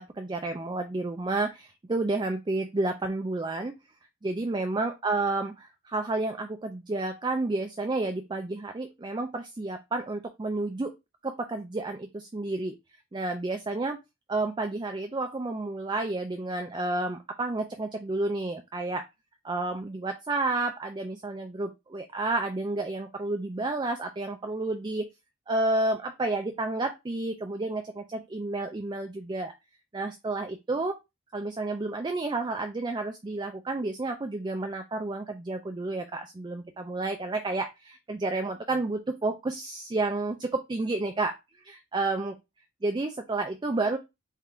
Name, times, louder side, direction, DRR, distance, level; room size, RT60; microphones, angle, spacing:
voice 1, 0.0-3.7 4.2-5.5 5.8-10.9 11.2-12.7 13.1-14.0 14.3-19.0 19.4-25.1 25.5-29.5 29.9-31.0 31.3-41.4 41.6-42.4 42.8-44.0, right 2 dB, 20° right, 6 dB, 0.3 m, -30 dB
3.6 x 2.5 x 4.3 m, 0.23 s
head